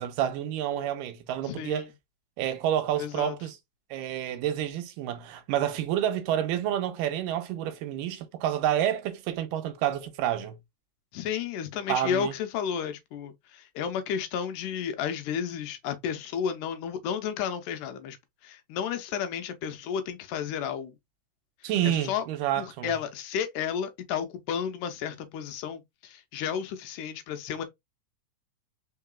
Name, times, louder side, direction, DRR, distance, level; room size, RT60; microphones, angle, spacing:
voice 1, 0.0-1.9 2.4-3.5 3.9-10.6 11.9-12.3 21.6-22.9, right 11 dB, 85° right, 2.3 m, -29 dB
voice 2, 1.4-1.9 2.9-3.4 11.1-18.2 18.4-21.0 21.8-22.3 22.6-27.6, left 8 dB, 85° left, 2.2 m, -32 dB
4.6 x 3.7 x 2.2 m
omnidirectional pair, 3.7 m